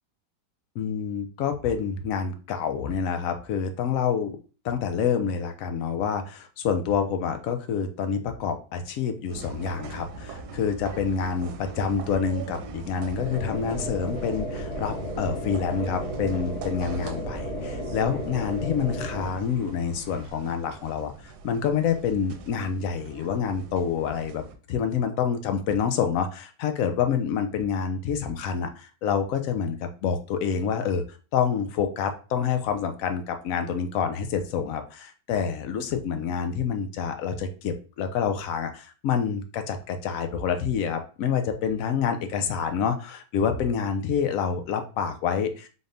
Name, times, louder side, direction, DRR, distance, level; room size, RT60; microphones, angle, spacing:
voice 1, 0.8-4.4 4.6-24.4 24.7-45.7, left 7 dB, 70° left, 7 dB, 0.9 m, -27 dB
sound 1, 9.3-24.5, right 3 dB, 80° right, 1.1 m, -41 dB
sound 2, 13.2-19.3, right 1 dB, 85° left, 2.0 m, -34 dB
sound 3, 13.4-20.3, left 2 dB, 40° left, 0.9 m, -47 dB
4.0 x 2.5 x 3.4 m, 0.36 s
omnidirectional pair, 1.7 m